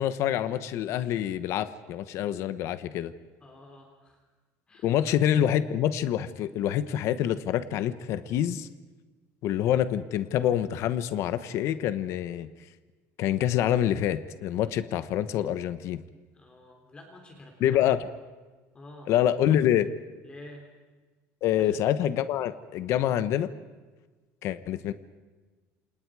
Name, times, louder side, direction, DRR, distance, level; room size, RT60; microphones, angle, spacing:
voice 1, 0.0-3.1 4.8-8.7 9.4-12.5 13.2-16.0 17.6-18.0 19.1-19.9 21.4-23.5 24.4-24.9, left 11 dB, 55° left, 12 dB, 1.1 m, -26 dB
voice 2, 3.4-4.2 4.7-5.0 16.3-18.0 18.7-19.1 20.2-20.7 21.6-21.8, left 1 dB, 15° left, 3 dB, 3.2 m, -49 dB
28.5 x 27.5 x 4.9 m, 1.3 s
cardioid pair, 175°, 6 cm